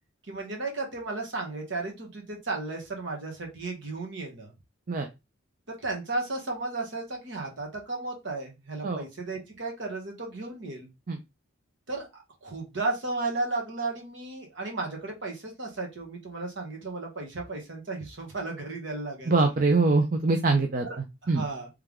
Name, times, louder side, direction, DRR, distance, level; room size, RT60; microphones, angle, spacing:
voice 1, 0.3-4.5 5.7-10.9 11.9-12.1 12.4-19.3 20.8-21.7, right 3 dB, 60° right, 1 dB, 1.5 m, -34 dB
voice 2, 19.3-20.9 21.3-21.4, right 3 dB, 45° right, 4 dB, 0.5 m, -23 dB
3.4 x 3.3 x 3.5 m, 0.23 s
head